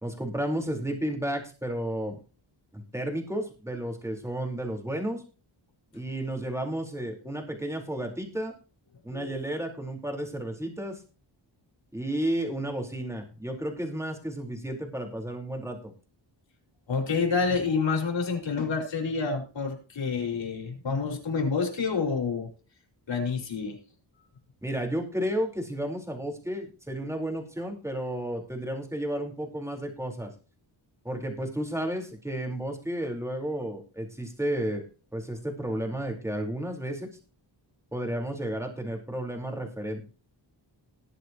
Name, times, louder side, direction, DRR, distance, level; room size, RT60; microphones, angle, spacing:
voice 1, 0.0-2.2 2.7-5.2 5.9-8.5 9.0-11.0 11.9-15.9 24.6-30.3 31.0-34.8 35.1-37.1 37.9-40.0, right 1 dB, 5° right, 2 dB, 4.2 m, -32 dB
voice 2, 16.9-22.5 23.1-23.8, left 5 dB, 75° left, 2 dB, 5.3 m, -28 dB
20.5 x 8.0 x 3.0 m, 0.35 s
wide cardioid pair, 105°, 45 cm